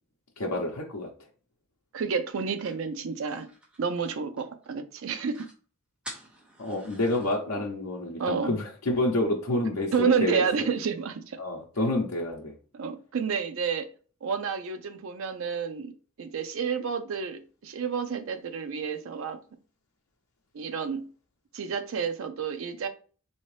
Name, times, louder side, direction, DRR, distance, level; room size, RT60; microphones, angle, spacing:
voice 1, 0.4-1.1 6.6-10.4 11.4-12.5, left 1 dB, 75° left, 0.7 m, -28 dB
voice 2, 1.9-3.5 3.8-5.4 8.2-8.6 9.9-11.4 12.7-13.9 14.2-15.9 16.2-19.4 20.5-21.1 21.5-22.9, right 6 dB, 60° right, 0.4 m, -30 dB
sound 1, 2.3-4.7 5.0-5.1 5.3-5.6 6.0-7.4, right 1 dB, 5° right, 0.6 m, -47 dB
3.6 x 2.8 x 3.2 m
head